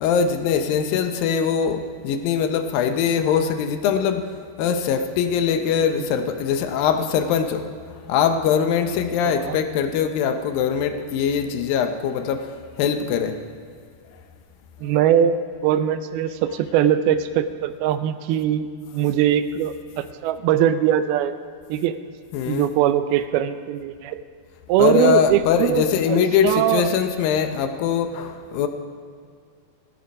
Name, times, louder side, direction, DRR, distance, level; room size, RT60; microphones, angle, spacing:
voice 1, 0.0-4.3 4.6-12.5 12.8-13.4 22.3-22.7 24.8-28.7, left 7 dB, 75° left, 7 dB, 2.3 m, -22 dB
voice 2, 9.2-9.6 14.8-18.7 18.9-21.3 21.7-21.9 22.5-24.2 24.7-26.8, right 10 dB, 85° right, 11 dB, 2.5 m, -21 dB
16.0 x 11.0 x 5.3 m, 2.2 s
omnidirectional pair, 4.4 m